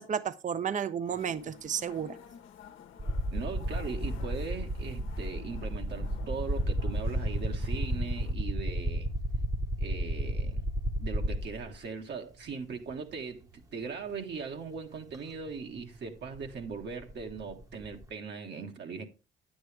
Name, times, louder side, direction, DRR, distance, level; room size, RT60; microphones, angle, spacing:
voice 1, 0.0-2.2, right 8 dB, 40° right, 0.6 m, -32 dB
sound 1, 1.1-8.3, left 8 dB, 85° left, 1.0 m, -52 dB
sound 2, 3.0-11.8 12.9-13.0 15.1-15.2 15.5-18.0, right 1 dB, 15° right, 0.9 m, -32 dB
voice 2, 3.3-9.1 9.8-10.6 11.0-19.1, right 5 dB, 60° right, 1.4 m, -39 dB
9.3 x 7.9 x 3.3 m
cardioid pair, 90°, 20 cm